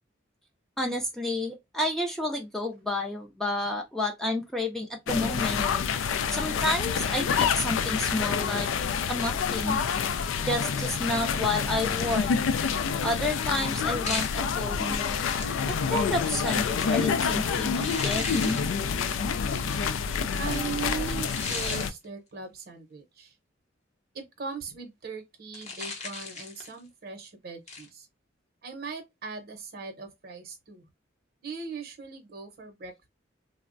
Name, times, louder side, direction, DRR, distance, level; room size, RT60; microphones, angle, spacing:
voice 1, 0.8-5.6 6.3-8.7 9.1-9.8 10.4-12.3 13.0-15.2 15.9-18.6, left 1 dB, ahead, 0.4 m, -30 dB
sound 1, 5.1-21.9, left 6 dB, 90° left, 0.3 m, -28 dB
sound 2, 12.1-12.6 14.0-14.5 15.3-16.8 17.8-18.8 19.7-20.0 21.2-21.9 25.5-26.8 27.7-27.9, left 4 dB, 35° left, 0.7 m, -36 dB
voice 2, 20.4-23.3 24.1-28.1 28.6-30.9 31.4-33.1, right 5 dB, 50° right, 0.7 m, -39 dB
3.3 x 2.0 x 2.5 m
head